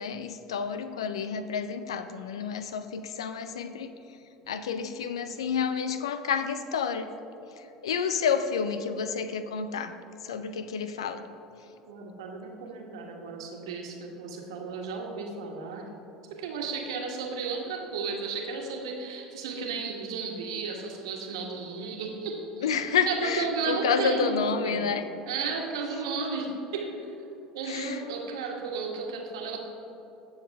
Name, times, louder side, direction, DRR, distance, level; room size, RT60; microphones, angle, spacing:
voice 1, 0.0-4.2 4.5-7.1 7.6-9.9 10.2-11.3 22.6-25.0 27.6-28.1, left 6 dB, 80° left, 10 dB, 0.5 m, -30 dB
voice 2, 11.9-15.9 16.4-22.7 23.1-24.9 25.3-27.1 27.5-29.6, right 4 dB, 75° right, 1 dB, 1.5 m, -33 dB
15.0 x 6.5 x 3.5 m, 3.0 s
hypercardioid pair, 75°, 3 cm